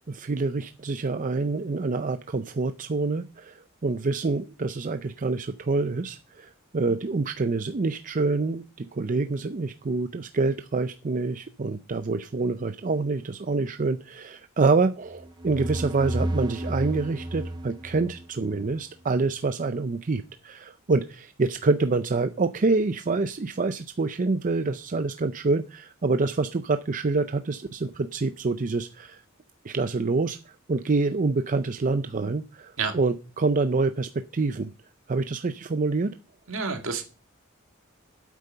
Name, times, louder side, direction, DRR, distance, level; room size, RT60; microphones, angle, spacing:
voice 1, 0.1-29.2 29.6-34.7 35.1-36.1, right 3 dB, 40° right, 10 dB, 0.5 m, -26 dB
sound 1, 15.1-18.8, right 1 dB, 20° right, 0.9 m, -32 dB
voice 2, 36.5-37.0, right 5 dB, 70° right, 5 dB, 2.2 m, -29 dB
9.0 x 8.3 x 6.7 m, 0.34 s
head